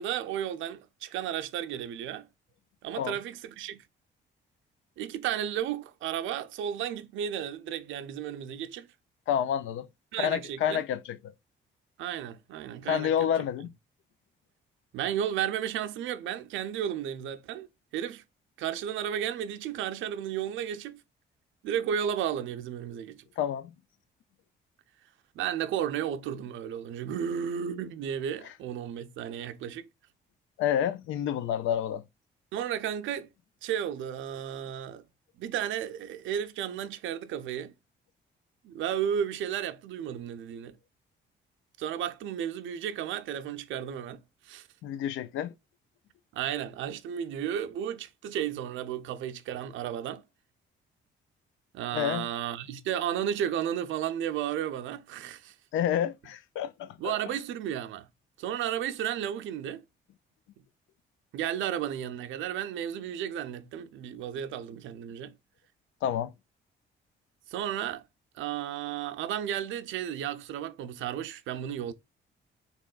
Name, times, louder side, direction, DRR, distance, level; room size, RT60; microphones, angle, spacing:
voice 1, 0.0-2.3 2.8-3.8 5.0-8.9 10.1-10.8 12.0-13.3 14.9-18.2 18.6-21.0 21.6-23.2 25.3-29.9 32.5-33.3 33.6-35.0 35.4-37.7 38.6-40.8 41.8-44.7 46.3-50.2 51.7-55.5 57.0-58.1 58.4-59.8 61.3-65.3 67.5-68.0 68.3-71.9, right 9 dB, 80° right, 0.5 m, -33 dB
voice 2, 9.3-9.9 10.2-11.2 12.9-13.7 23.4-23.7 30.6-32.0 44.8-45.5 51.9-52.3 55.7-57.1 66.0-66.3, left 9 dB, 80° left, 0.4 m, -29 dB
3.5 x 2.9 x 2.3 m
cardioid pair, 90°, 20 cm